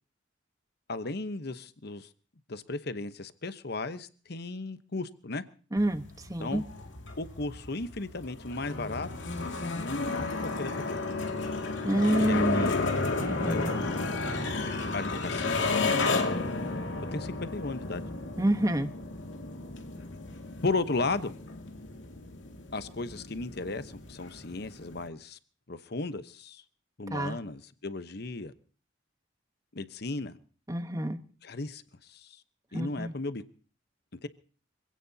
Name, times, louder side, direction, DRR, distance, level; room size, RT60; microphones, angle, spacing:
voice 1, 0.9-2.1 2.5-5.4 6.4-6.6 7.2-9.1 9.8-11.0 12.1-12.9 13.5-13.9 14.9-16.2 17.1-18.0 20.6-21.3 22.7-25.4 25.7-26.6 27.0-28.5 29.7-30.4 31.4-31.8 32.1-32.4 32.7-33.4 34.1-34.3, left 3 dB, 60° left, 1.0 m, -35 dB
voice 2, 5.7-6.6 11.8-12.7 13.2-13.7 18.4-18.9 27.1-27.4 30.7-31.2 32.7-33.1, right 1 dB, 20° right, 1.1 m, -28 dB
sound 1, 5.8-25.1, left 3 dB, 85° left, 2.3 m, -33 dB
25.5 x 17.0 x 2.8 m
head